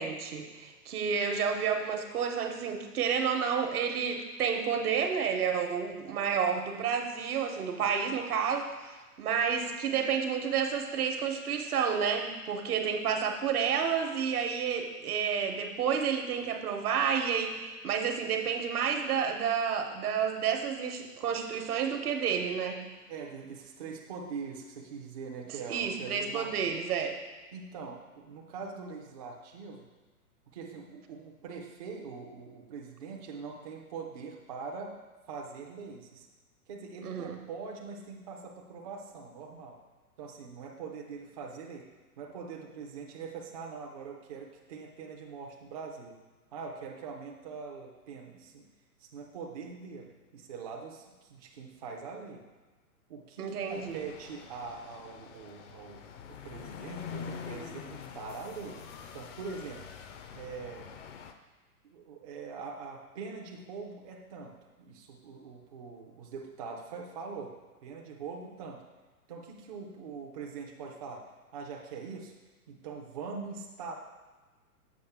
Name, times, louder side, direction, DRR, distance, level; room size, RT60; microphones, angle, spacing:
voice 1, 0.0-22.8 25.7-27.1 37.0-37.3 53.4-54.0, right 7 dB, 70° right, 4 dB, 1.0 m, -30 dB
voice 2, 23.1-26.7 27.5-29.9 30.5-35.0 35.3-36.3 36.7-39.8 40.2-46.2 46.5-48.7 49.0-52.5 53.1-58.9 59.1-59.9 60.3-60.9 61.9-68.8 69.3-72.3 72.7-73.9, right 5 dB, 25° right, 0 dB, 0.4 m, -43 dB
sound 1, 53.7-61.3, left 7 dB, 50° left, 0.6 m, -45 dB
7.1 x 5.2 x 3.5 m, 1.2 s
hypercardioid pair, 135°, 46 cm